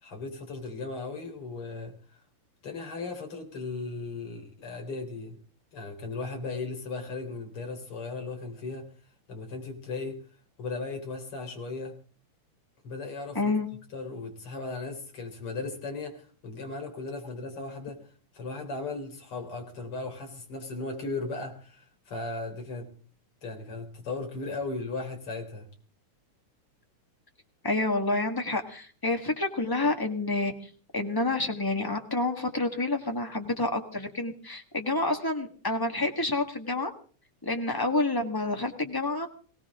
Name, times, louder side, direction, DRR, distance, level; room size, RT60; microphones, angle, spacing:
voice 1, 0.0-2.2 2.6-5.4 5.7-8.9 9.3-10.2 10.6-12.0 12.8-13.5 13.9-18.0 18.3-22.9 23.4-25.7, left 3 dB, 45° left, 3 dB, 4.5 m, -37 dB
voice 2, 13.3-13.7 27.6-30.5 30.9-36.9 37.4-39.3, left 2 dB, 15° left, 4 dB, 0.8 m, -28 dB
22.0 x 18.0 x 3.7 m, 0.41 s
omnidirectional pair, 3.5 m